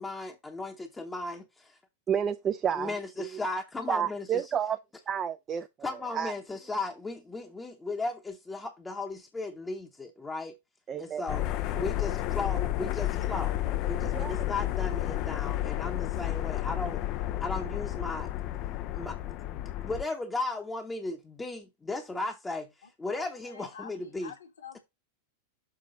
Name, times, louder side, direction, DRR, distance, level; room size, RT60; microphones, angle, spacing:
voice 1, 0.0-1.8 2.8-4.5 5.8-10.6 11.0-11.5 11.7-17.0 17.4-18.3 18.9-24.3, left 2 dB, 10° left, 0.9 m, -36 dB
voice 2, 2.1-2.9 3.2-3.4 3.9-4.8 5.1-6.3 10.9-11.2 11.8-11.9 14.0-14.4, right 8 dB, 25° right, 0.4 m, -31 dB
sound 1, 11.3-20.0, left 14 dB, 40° left, 0.4 m, -31 dB
voice 3, 22.8-24.8, left 7 dB, 65° left, 1.6 m, -47 dB
6.9 x 3.7 x 5.0 m
figure-of-eight pair, 90°, 0 cm